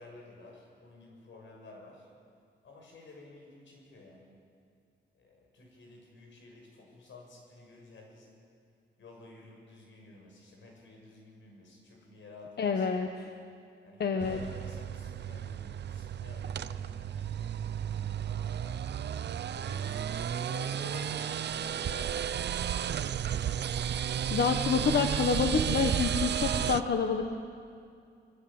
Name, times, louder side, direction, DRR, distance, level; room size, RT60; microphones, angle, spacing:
voice 1, 0.0-2.1 2.6-4.3 5.2-8.4 9.0-12.9 13.8-19.0 19.5-22.9, left 2 dB, 90° left, 1 dB, 6.9 m, -51 dB
voice 2, 12.6-13.3 14.0-14.4 24.3-27.3, left 5 dB, 60° left, 5 dB, 1.3 m, -28 dB
sound 1, 14.2-26.8, right 9 dB, 65° right, 0.7 m, -33 dB
24.0 x 22.0 x 8.9 m, 2.4 s
wide cardioid pair, 165°, 19 cm